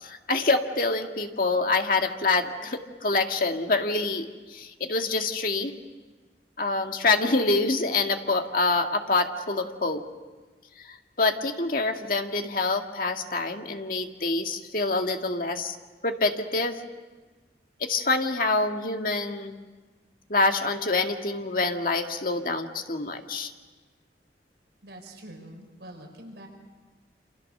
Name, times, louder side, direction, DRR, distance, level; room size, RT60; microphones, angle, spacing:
voice 1, 0.0-5.7 6.6-10.0 10.8-15.8 16.0-16.8 17.8-19.6 20.3-23.5, left 3 dB, 50° left, 4 dB, 1.9 m, -26 dB
voice 2, 24.8-26.5, right 1 dB, 80° right, 2 dB, 5.3 m, -45 dB
28.0 x 27.0 x 6.7 m, 1.3 s
head